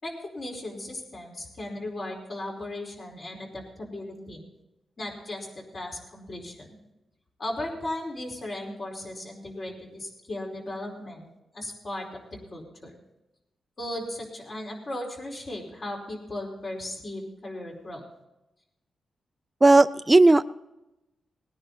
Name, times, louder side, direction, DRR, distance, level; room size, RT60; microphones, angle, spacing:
voice 1, 0.0-4.4 5.0-6.8 7.4-11.3 11.5-12.2 12.5-12.9 13.8-18.0, left 1 dB, 45° left, -1 dB, 4.9 m, -36 dB
voice 2, 19.6-20.4, right 2 dB, 20° right, 13 dB, 0.5 m, -16 dB
19.5 x 10.0 x 4.2 m, 0.94 s
cardioid pair, 105°, 0 cm